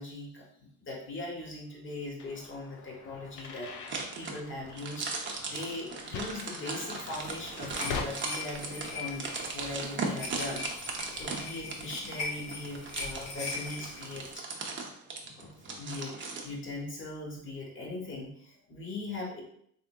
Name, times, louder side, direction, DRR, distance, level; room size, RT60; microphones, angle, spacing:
voice 1, 0.0-3.7 4.2-5.1 5.4-14.4 15.2-16.1 16.4-19.4, left 2 dB, 35° left, -2 dB, 1.5 m, -40 dB
sound 1, 2.2-8.1, left 5 dB, 55° left, 0.6 m, -42 dB
sound 2, 3.9-16.5, right 4 dB, 35° right, 0.8 m, -38 dB
sound 3, 6.9-14.3, left 4 dB, 85° left, 1.1 m, -41 dB
3.7 x 3.4 x 2.3 m, 0.67 s
supercardioid pair, 80°, 35 cm